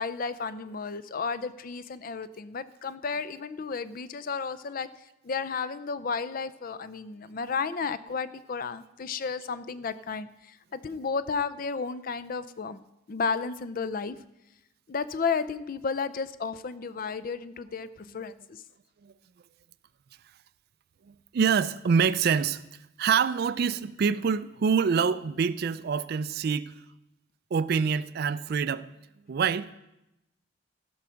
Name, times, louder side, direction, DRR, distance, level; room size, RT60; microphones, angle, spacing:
voice 1, 0.0-4.9 5.2-12.8 13.1-14.2 14.9-18.6, left 5 dB, 45° left, 0.4 m, -33 dB
voice 2, 21.1-22.6 23.0-26.7 27.5-28.9 29.3-29.8, right 6 dB, 55° right, 0.3 m, -26 dB
15.0 x 6.2 x 5.7 m
head